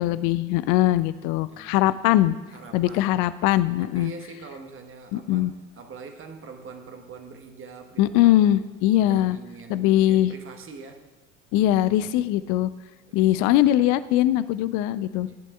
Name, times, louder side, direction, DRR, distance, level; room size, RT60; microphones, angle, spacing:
voice 1, 0.0-2.4 2.7-4.1 5.1-5.5 8.0-9.4 9.7-10.3 11.5-12.7 13.1-15.3, left 14 dB, 50° left, 15 dB, 0.6 m, -21 dB
voice 2, 1.5-2.2 2.5-8.6 9.0-11.1 13.1-13.6 15.3-15.4, right 4 dB, 35° right, 5 dB, 1.4 m, -44 dB
17.5 x 11.0 x 2.4 m, 1.2 s
figure-of-eight pair, 70°, 39 cm